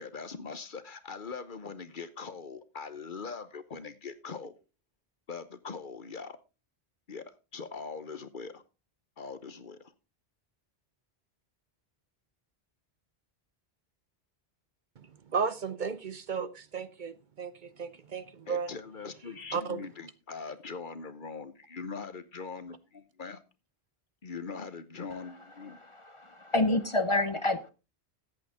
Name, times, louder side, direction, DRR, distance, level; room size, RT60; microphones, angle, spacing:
voice 1, 0.0-4.5 5.3-6.4 7.1-7.2 7.5-8.6 9.2-9.9 18.5-23.4 24.2-25.8, left 5 dB, 55° left, 1.1 m, -41 dB
voice 2, 15.0-18.7 19.5-19.8, right 6 dB, 55° right, 0.8 m, -34 dB
voice 3, 25.9-27.7, left 2 dB, 35° left, 0.7 m, -28 dB
13.5 x 8.7 x 3.6 m
omnidirectional pair, 1.1 m